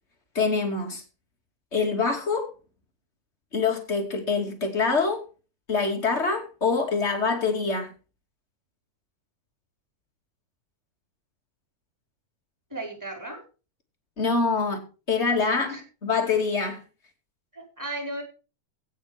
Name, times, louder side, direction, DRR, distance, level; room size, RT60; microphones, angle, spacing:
voice 1, 0.3-1.0 1.7-2.5 3.5-5.2 5.7-7.9 14.2-15.8 16.0-16.8, left 4 dB, 20° left, 2.4 m, -25 dB
voice 2, 12.7-13.4 15.6-15.8 17.5-18.2, right 1 dB, 5° right, 4.6 m, -35 dB
16.5 x 6.3 x 5.0 m
omnidirectional pair, 3.6 m